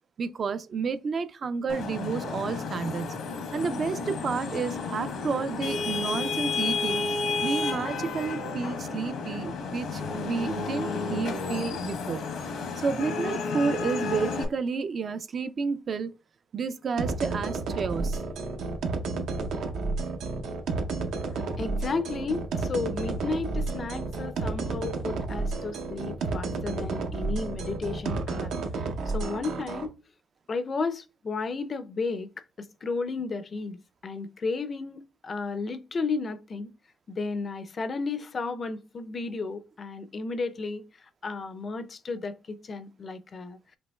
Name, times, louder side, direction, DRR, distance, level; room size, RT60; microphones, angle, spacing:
voice 1, 0.2-3.2 3.5-7.0 7.4-12.2 12.8-16.1 16.5-18.2, right 5 dB, 50° right, 0.3 m, -30 dB
Vehicle horn car horn honking / Traffic noise roadway noise, 1.7-14.4, left 4 dB, 80° left, 0.9 m, -32 dB
sound 1, 17.0-29.9, right 3 dB, 85° right, 0.7 m, -31 dB
voice 2, 21.3-28.5 28.8-29.9 30.5-32.3 32.6-36.7 37.1-40.8 41.2-43.8, left 4 dB, 40° left, 0.4 m, -33 dB
5.2 x 2.8 x 2.2 m
cardioid pair, 90°, 0 cm